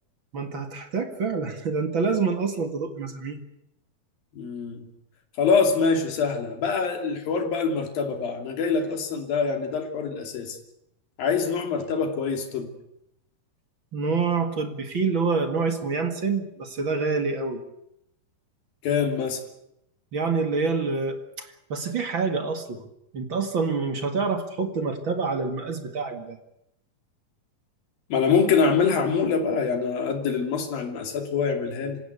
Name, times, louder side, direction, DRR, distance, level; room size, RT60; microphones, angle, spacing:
voice 1, 0.3-3.4 13.9-17.6 20.1-22.8 23.1-26.4, right 4 dB, 40° right, 6 dB, 2.1 m, -27 dB
voice 2, 4.3-4.9 5.4-10.6 11.2-12.7 18.8-19.4 28.1-32.0, left 5 dB, 70° left, 4 dB, 4.6 m, -24 dB
27.0 x 16.5 x 8.3 m, 0.81 s
omnidirectional pair, 4.3 m